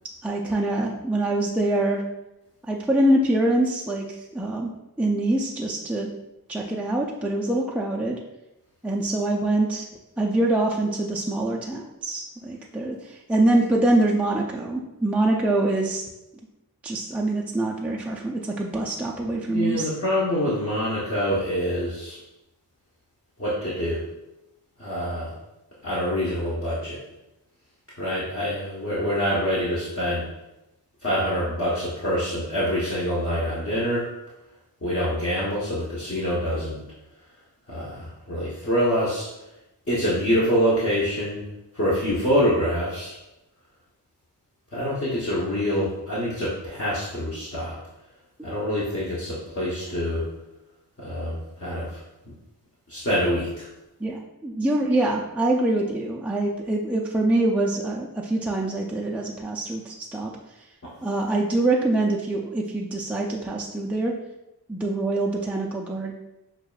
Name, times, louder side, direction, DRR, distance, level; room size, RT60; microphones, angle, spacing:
voice 1, 0.2-2.0 2.7-4.7 5.0-6.1 6.5-8.2 8.8-9.9 10.2-16.0 16.8-19.9 54.0-60.3 61.0-64.2 64.7-66.1, right 2 dB, 5° right, -2 dB, 0.4 m, -24 dB
voice 2, 19.5-22.2 23.4-24.0 24.8-25.4 25.8-27.0 28.0-30.2 31.0-34.1 34.8-36.8 37.7-39.3 39.9-41.5 41.7-43.2 44.7-47.8 48.4-50.3 51.0-52.0 52.9-53.7 60.8-60.9, equal, 35° left, -9 dB, 1.1 m, -25 dB
6.3 x 2.4 x 2.3 m, 0.93 s
wide cardioid pair, 60°, 38 cm